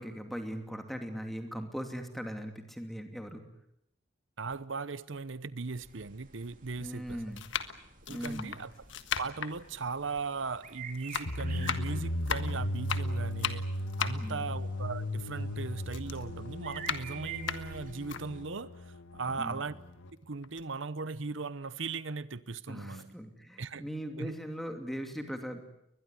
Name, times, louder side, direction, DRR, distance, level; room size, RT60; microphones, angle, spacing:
voice 1, 0.0-3.4 6.8-7.4 8.1-8.6 14.1-14.5 19.3-19.6 22.7-25.6, equal, ahead, 2.7 m, -39 dB
voice 2, 4.4-7.2 8.1-8.7 9.2-13.7 14.0-19.7 20.2-23.1 23.6-23.9 24.2-24.4, right 4 dB, 65° right, 0.9 m, -38 dB
sound 1, 4.5-4.6 5.5-5.6 6.6-6.8 7.3-10.7 10.9-15.5 15.9-18.2 18.7-18.8 19.1-20.1 20.4-20.6, left 7 dB, 65° left, 1.6 m, -37 dB
sound 2, 5.7-18.5, right 6 dB, 40° right, 3.4 m, -50 dB
sound 3, 11.3-20.1, left 1 dB, 80° left, 1.9 m, -36 dB
22.5 x 21.0 x 9.9 m
head